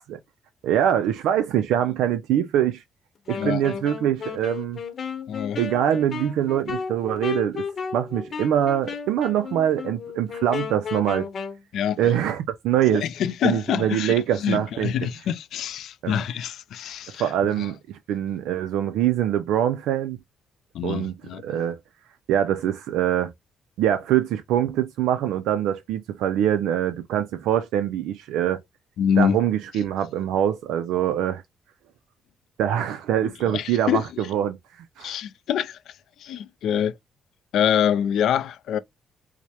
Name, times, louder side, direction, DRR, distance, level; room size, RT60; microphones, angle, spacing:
voice 1, 0.6-2.8 3.3-4.8 5.6-7.6 7.9-11.3 12.0-13.0 13.4-14.9 16.0-16.2 17.1-20.2 20.8-21.1 21.4-21.8 22.3-23.3 23.8-28.6 29.2-31.4 32.6-34.0 34.3-35.2, right 10 dB, 90° right, 0.4 m, -24 dB
Wind instrument woodwind instrument, 3.3-11.6, left 6 dB, 55° left, 0.8 m, -33 dB
voice 2, 5.3-5.6 11.7-12.1 12.9-17.3 17.6-17.7 20.7-21.4 29.0-29.4 33.2-34.0 35.0-35.9 36.2-37.0 37.5-38.8, left 9 dB, 75° left, 0.4 m, -25 dB
4.6 x 2.1 x 2.8 m
cardioid pair, 90°, 0 cm